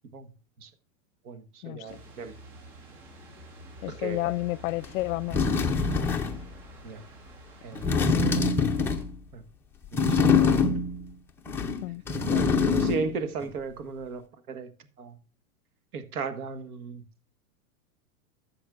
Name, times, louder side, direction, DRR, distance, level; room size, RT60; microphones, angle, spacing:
voice 1, 1.2-2.3 3.9-4.3 6.8-7.0 7.6-8.4 9.3-9.4 9.9-10.7 12.3-14.7 15.0-15.2 15.9-17.0, right 5 dB, 85° right, 1.5 m, -36 dB
sound 1, 1.9-9.0, equal, 50° right, 3.5 m, -48 dB
voice 2, 3.8-5.5 8.0-8.6 11.8-12.0, left 18 dB, 65° left, 0.5 m, -31 dB
sound 2, 4.8-4.9 5.3-6.4 7.7-9.1 9.9-11.0 11.4-13.1 13.4-13.5, left 4 dB, 5° left, 0.4 m, -24 dB
13.5 x 7.7 x 2.5 m
supercardioid pair, 140°, 43 cm